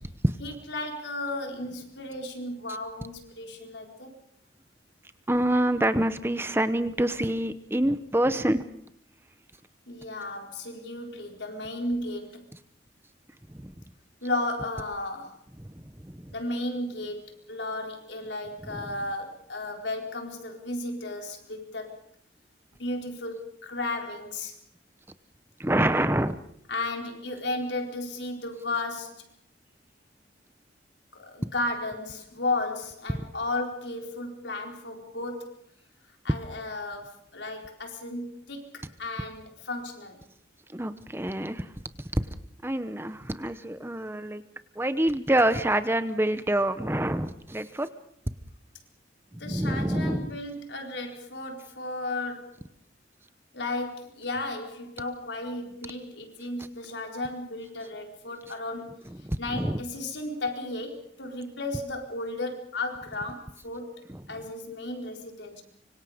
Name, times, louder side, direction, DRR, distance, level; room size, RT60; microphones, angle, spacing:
voice 1, 0.4-4.1 9.9-12.4 14.2-15.3 16.3-21.9 22.8-24.5 26.7-29.2 31.1-35.6 36.2-40.2 49.4-52.7 53.5-58.9 59.4-63.9 64.3-65.6, left 2 dB, 80° left, 3 dB, 4.4 m, -34 dB
voice 2, 5.3-8.6 13.5-13.7 15.6-16.3 18.6-18.9 25.6-26.4 40.7-41.7 42.1-42.3 42.6-44.4 44.8-47.9 49.4-50.4 59.1-59.8 64.1-64.2, right 1 dB, 15° right, 11 dB, 0.9 m, -27 dB
25.5 x 25.0 x 5.1 m, 0.67 s
head